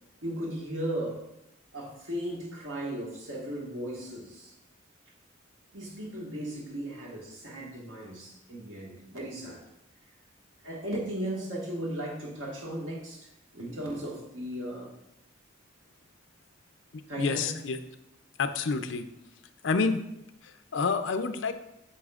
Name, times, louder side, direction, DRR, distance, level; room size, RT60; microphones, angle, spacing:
voice 1, 0.2-1.3 1.7-4.5 5.7-9.6 10.6-13.3 13.5-14.9 17.1-17.6, right 1 dB, 80° right, -3 dB, 1.7 m, -36 dB
voice 2, 16.9-17.8 18.4-19.0 19.6-20.0 20.4-21.5, left 4 dB, 70° left, 9 dB, 0.5 m, -28 dB
8.4 x 6.2 x 2.4 m, 0.85 s
head